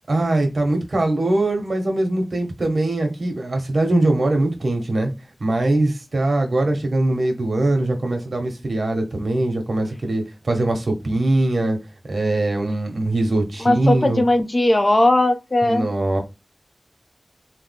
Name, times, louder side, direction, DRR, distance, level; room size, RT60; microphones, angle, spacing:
voice 1, 0.1-5.1 5.4-11.8 12.0-14.2 15.6-16.2, right 2 dB, 70° right, 1.1 m, -21 dB
voice 2, 13.6-15.9, left 1 dB, 40° left, 0.7 m, -18 dB
3.2 x 2.1 x 3.4 m
wide cardioid pair, 50°, 0 cm